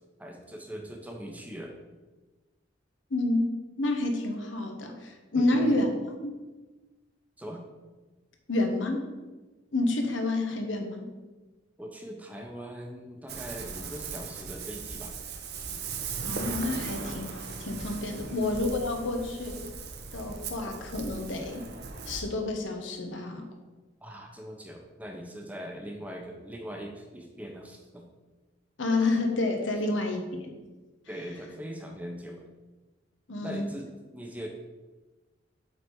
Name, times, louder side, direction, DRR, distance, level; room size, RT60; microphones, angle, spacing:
voice 1, 0.2-1.8 5.3-5.8 7.4-7.6 11.8-15.1 18.2-18.4 24.0-28.1 29.9-30.0 31.1-32.5 33.4-34.5, equal, 10° right, 2 dB, 0.8 m, -41 dB
voice 2, 3.1-3.4 3.8-6.3 8.5-9.1 9.7-11.1 16.2-19.6 20.1-21.6 22.1-23.5 28.8-30.5 33.3-33.6, left 2 dB, 85° left, 4 dB, 1.1 m, -29 dB
Ocean, 13.3-22.2, right 5 dB, 55° right, 0.7 m, -38 dB
7.9 x 4.1 x 4.7 m, 1.2 s
head